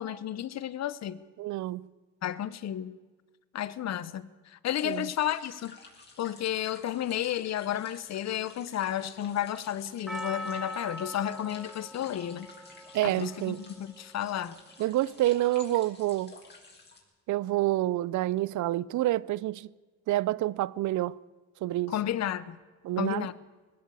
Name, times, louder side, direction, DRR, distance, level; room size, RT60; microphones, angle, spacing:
voice 1, 0.0-1.2 2.2-3.0 3.5-5.7 6.2-12.5 13.0-14.6 21.9-22.6 23.0-23.3, left 11 dB, 60° left, 0.9 m, -32 dB
voice 2, 1.4-1.9 4.8-5.1 12.9-13.6 14.8-16.4 17.3-19.7 20.1-21.2 21.6-21.9 22.8-23.3, right 15 dB, 75° right, 0.6 m, -28 dB
sound 1, 4.7-17.0, left 3 dB, 35° left, 5.4 m, -52 dB
Percussion, 10.1-14.4 15.1-15.2, equal, ahead, 1.8 m, -42 dB
20.5 x 16.5 x 8.4 m
cardioid pair, 90°, 30 cm